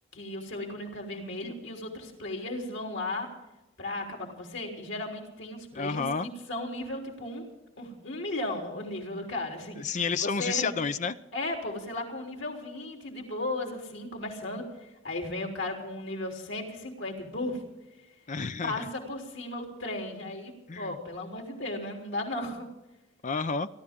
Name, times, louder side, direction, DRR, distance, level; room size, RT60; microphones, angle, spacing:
voice 1, 0.1-3.3 3.8-7.4 7.8-10.8 11.3-17.6 18.6-22.7, left 2 dB, 65° left, 2 dB, 3.6 m, -35 dB
voice 2, 5.7-6.3 9.8-11.2 18.3-18.9 20.7-20.9 23.2-23.7, left 5 dB, 40° left, 12 dB, 0.6 m, -30 dB
30.0 x 12.0 x 3.7 m, 0.99 s
head